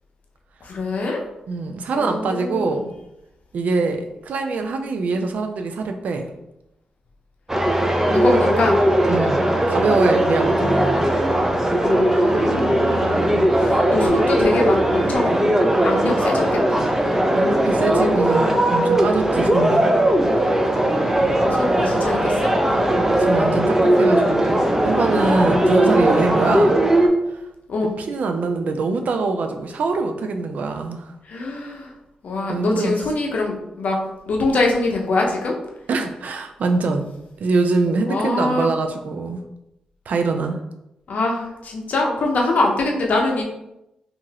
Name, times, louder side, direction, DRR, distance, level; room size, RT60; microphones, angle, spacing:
voice 1, 0.6-1.2 1.9-2.8 8.1-8.8 10.4-10.8 11.8-15.3 15.8-16.9 21.4-22.5 27.7-27.9 31.2-31.9 32.2-34.0 34.3-35.6 38.1-38.7 41.1-43.4, left 2 dB, 70° left, 0 dB, 0.6 m, -24 dB
voice 2, 1.5-2.9 3.5-6.3 9.1-11.1 17.3-19.9 23.2-26.8 27.3-27.5 28.0-31.2 32.5-32.9 35.9-37.1 37.4-39.4 40.1-40.6, right 3 dB, 70° right, 5 dB, 0.4 m, -24 dB
sound 1, 7.5-27.1, right 1 dB, 15° right, 0.5 m, -18 dB
2.8 x 2.5 x 2.8 m, 0.88 s
cardioid pair, 60°, 3 cm